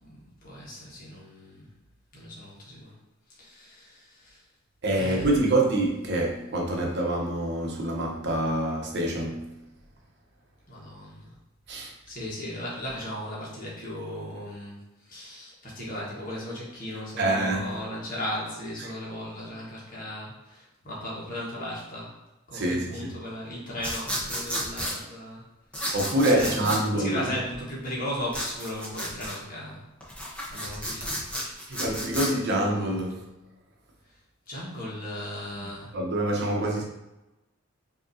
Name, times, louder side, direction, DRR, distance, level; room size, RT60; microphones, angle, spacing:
voice 1, 0.0-1.7 2.1-3.0 3.3-4.4 4.9-5.6 10.7-11.4 11.7-22.2 22.5-25.5 26.3-29.9 30.5-31.3 31.7-31.8 34.0-34.2 34.5-36.0, equal, 45° left, -5 dB, 1.3 m, -37 dB
voice 2, 4.8-9.5 11.7-11.9 17.2-17.7 22.5-23.0 25.9-27.2 31.7-33.3 35.9-36.8, right 1 dB, 55° right, 0 dB, 0.9 m, -26 dB
sound 1, 23.8-25.0 25.7-26.8 28.3-29.4 30.0-32.3, equal, 5° left, 0.9 m, -32 dB
5.2 x 2.9 x 2.7 m, 0.97 s
head